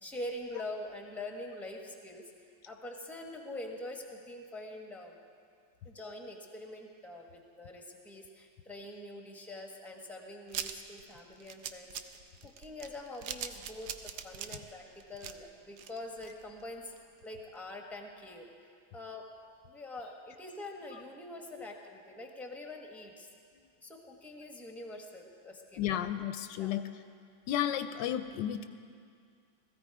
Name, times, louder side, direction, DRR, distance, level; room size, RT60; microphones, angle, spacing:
voice 1, 0.0-2.2 2.7-5.1 5.8-12.1 12.4-13.9 14.2-16.9 17.2-18.4 18.9-19.2 19.7-23.3 23.8-25.9 26.6-26.8, left 1 dB, ahead, 2 dB, 0.9 m, -44 dB
sound 1, 10.5-16.6 17.0-17.1 17.3-17.4, right 9 dB, 70° right, 1.1 m, -42 dB
voice 2, 25.8-26.9 27.5-28.7, left 10 dB, 75° left, 10 dB, 1.1 m, -32 dB
17.0 x 14.5 x 4.8 m, 2.3 s
omnidirectional pair, 2.1 m